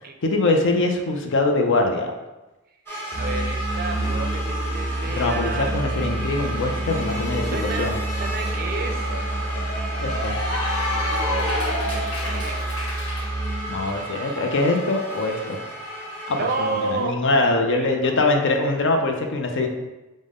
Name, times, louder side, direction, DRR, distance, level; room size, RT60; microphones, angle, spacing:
voice 1, 0.2-2.1 5.0-8.0 10.0-10.4 13.7-15.6 16.3-19.7, left 2 dB, 60° left, 3 dB, 0.5 m, -23 dB
sound 1, 2.9-17.0, right 1 dB, 10° left, 1.1 m, -34 dB
Musical instrument, 3.1-13.9, right 1 dB, 5° right, 0.6 m, -28 dB
voice 2, 3.1-5.8 7.5-9.3 11.8-12.6 16.4-17.2 17.7-18.4, right 3 dB, 45° right, 3 dB, 0.5 m, -31 dB
Cheering / Applause, 7.9-13.2, left 2 dB, 75° left, 1.3 m, -30 dB
4.9 x 2.1 x 3.5 m, 1.0 s
head